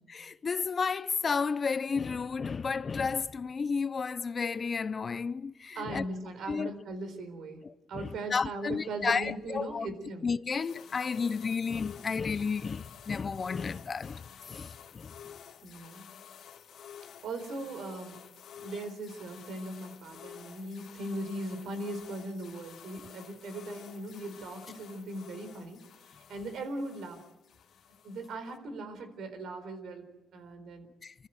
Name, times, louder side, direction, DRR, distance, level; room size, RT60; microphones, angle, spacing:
voice 1, 0.1-6.0 6.5-6.7 7.9-9.9 10.2-15.1 31.0-31.1, left 5 dB, 40° left, 0.7 m, -32 dB
voice 2, 5.8-7.6 7.9-10.3 15.6-16.1 17.2-18.2 18.5-25.8 26.1-27.2 28.0-30.9, right 2 dB, 70° right, 4.2 m, -39 dB
sound 1, 10.6-28.6, left 8 dB, 70° left, 2.4 m, -51 dB
26.0 x 14.0 x 9.1 m
cardioid pair, 90°, 0 cm